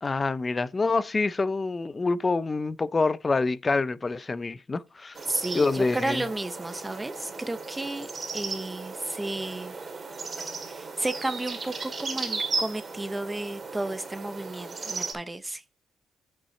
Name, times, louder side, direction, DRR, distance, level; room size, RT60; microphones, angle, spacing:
voice 1, 0.0-5.2 5.5-6.2, left 3 dB, 25° left, 0.4 m, -26 dB
sound 1, 5.2-15.1, right 4 dB, 35° right, 2.1 m, -36 dB
voice 2, 5.3-8.1 8.3-9.8 10.7-15.6, right 2 dB, 15° right, 0.7 m, -32 dB
8.7 x 5.5 x 4.2 m
cardioid pair, 90°, 0 cm